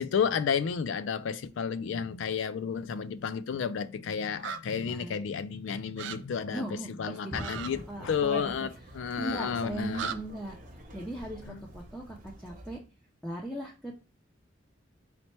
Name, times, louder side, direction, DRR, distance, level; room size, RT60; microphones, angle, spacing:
voice 1, 0.0-10.0 11.4-11.6, left 6 dB, 80° left, 0.3 m, -32 dB
sound 1, 4.4-4.6 6.0-6.2 7.4-7.7 9.9-10.2, right 7 dB, 70° right, 0.3 m, -36 dB
voice 2, 4.9-5.2 6.5-8.7 9.2-10.6 10.9-12.8 13.2-14.0, right 1 dB, 5° left, 0.4 m, -38 dB
Conversation, 7.5-12.8, right 1 dB, 45° right, 0.9 m, -47 dB
4.2 x 2.1 x 4.3 m
head